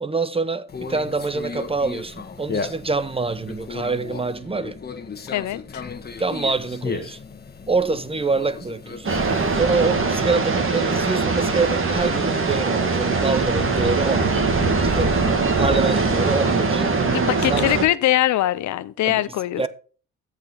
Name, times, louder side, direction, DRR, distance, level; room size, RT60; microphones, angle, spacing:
voice 1, 0.0-4.8 6.2-7.2 7.7-9.2 9.5-14.3 14.8-15.2 15.6-17.7 19.0-19.2 19.6-19.7, right 4 dB, 20° right, 0.7 m, -25 dB
Conversation, 0.7-9.5, left 4 dB, 35° left, 1.3 m, -35 dB
voice 2, 5.3-5.8 17.0-19.6, left 14 dB, 70° left, 0.7 m, -22 dB
sound 1, 9.1-17.9, right 3 dB, 45° right, 2.2 m, -21 dB
13.5 x 5.1 x 4.1 m
cardioid pair, 90°, 30 cm